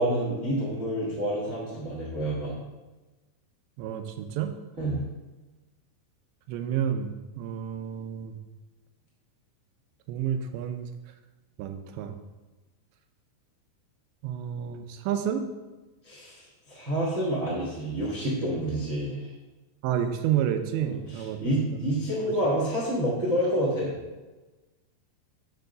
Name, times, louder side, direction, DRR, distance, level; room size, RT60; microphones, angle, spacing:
voice 1, 0.0-2.5 4.8-5.0 16.0-19.3 20.8-23.9, right 1 dB, 65° right, -5 dB, 0.8 m, -28 dB
voice 2, 3.8-4.5 6.5-7.1 7.4-8.4 10.1-10.9 11.6-12.2 14.2-15.5 19.8-21.4 21.7-21.8 22.3-22.4, right 9 dB, 85° right, 7 dB, 2.9 m, -30 dB
7.0 x 4.6 x 6.5 m, 1.2 s
omnidirectional pair, 5.0 m